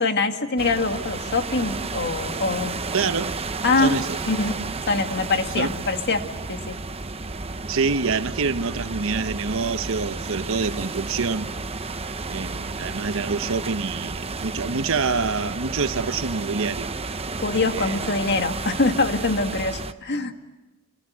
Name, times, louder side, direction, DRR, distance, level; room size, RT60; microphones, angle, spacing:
voice 1, 0.0-2.8 3.6-3.9 4.3-4.5 4.9-6.2 6.5-6.7 17.4-20.3, left 3 dB, 55° left, 2.0 m, -24 dB
sound 1, 0.6-19.9, right 3 dB, 30° right, 0.9 m, -32 dB
voice 2, 2.9-3.3 3.8-4.2 5.6-5.7 7.7-11.5 12.3-16.9 17.7-18.0, right 4 dB, 65° right, 1.0 m, -26 dB
27.0 x 27.0 x 8.0 m
head